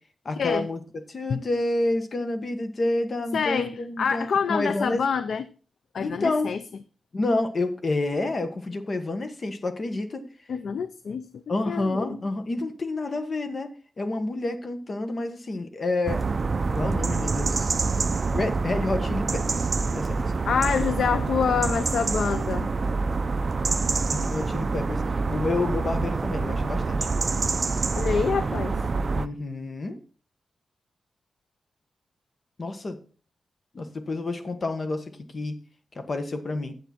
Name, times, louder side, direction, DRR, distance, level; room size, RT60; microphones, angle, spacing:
voice 1, 0.2-0.8 1.1-5.0 6.0-6.5 7.1-10.2 11.5-13.7 14.0-16.2 16.7-17.7 18.3-19.7 19.9-20.3 24.1-25.0 25.3-27.1 29.1-30.0 32.6-33.0 33.7-35.0 35.3-35.5 35.9-36.7, left 2 dB, 40° left, 1.3 m, -29 dB
voice 2, 3.3-5.4 5.9-6.6 10.5-12.2 20.4-22.7 27.9-28.8, left 6 dB, 75° left, 0.5 m, -26 dB
sound 1, 16.1-29.3, right 4 dB, 40° right, 0.5 m, -26 dB
9.5 x 7.8 x 4.3 m
wide cardioid pair, 120°, 0 cm